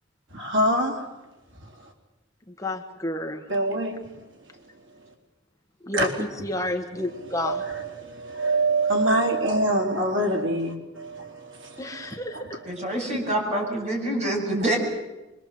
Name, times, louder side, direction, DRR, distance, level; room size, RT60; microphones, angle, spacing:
voice 1, 0.3-1.1 3.5-4.0 5.9-6.1 7.3-12.6 12.9-13.2 13.6-13.7, right 1 dB, 80° right, 1 dB, 4.2 m, -25 dB
voice 2, 2.6-3.4 5.8-7.6 11.8-12.6, left 1 dB, 15° left, 4 dB, 1.3 m, -30 dB
voice 3, 12.7-14.8, right 1 dB, 35° right, 0 dB, 7.1 m, -26 dB
25.0 x 23.5 x 7.7 m, 1.0 s
head